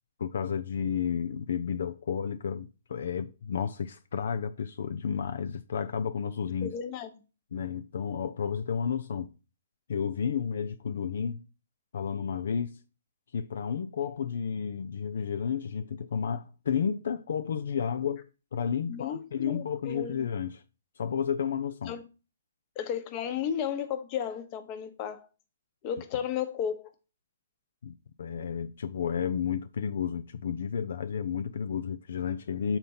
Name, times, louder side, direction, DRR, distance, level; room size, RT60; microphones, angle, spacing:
voice 1, 0.2-6.7 7.5-9.3 9.9-11.4 11.9-12.8 13.3-20.6 21.0-22.0 27.8-32.8, left 7 dB, 65° left, 0.5 m, -32 dB
voice 2, 6.6-7.1 18.9-20.3 21.8-22.0 22.8-25.3 25.8-26.9, left 8 dB, 30° left, 1.0 m, -34 dB
6.7 x 4.4 x 5.5 m
hypercardioid pair, 155°, 0 cm